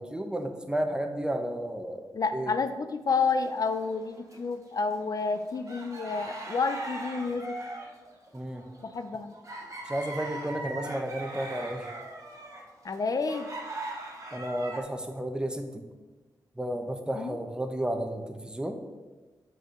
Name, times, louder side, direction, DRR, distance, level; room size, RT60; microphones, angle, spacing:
voice 1, 0.0-2.5 8.3-8.6 9.9-11.9 14.3-15.8 16.6-18.8, right 1 dB, 10° right, 5 dB, 1.0 m, -32 dB
voice 2, 2.1-7.6 8.8-9.4 12.8-13.5 17.1-17.4, left 4 dB, 50° left, 9 dB, 0.5 m, -30 dB
sound 1, 3.1-4.4 4.8-14.8, right 2 dB, 40° right, 1.8 m, -40 dB
6.1 x 4.7 x 6.4 m, 1.2 s
cardioid pair, 80°, 8 cm